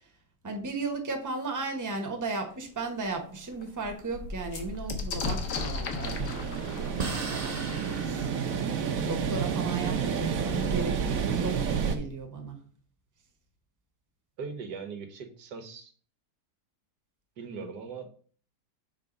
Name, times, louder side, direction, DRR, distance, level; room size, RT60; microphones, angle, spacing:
voice 1, 0.4-6.7 7.3-7.7 8.0-8.3 9.0-12.6, right 3 dB, 15° right, 4 dB, 0.9 m, -35 dB
sound 1, 2.5-2.6 3.0-3.1 3.4-8.9 9.9-10.0 10.3-10.9, left 3 dB, 75° left, 1.6 m, -37 dB
sound 2, 5.9-10.6, right 4 dB, 40° right, 1.1 m, -40 dB
sound 3, 6.0-12.0, right 6 dB, 60° right, 1.1 m, -30 dB
voice 2, 14.4-15.9 17.4-18.2, right 5 dB, 90° right, 6 dB, 1.7 m, -40 dB
6.5 x 3.6 x 5.2 m, 0.43 s
omnidirectional pair, 1.8 m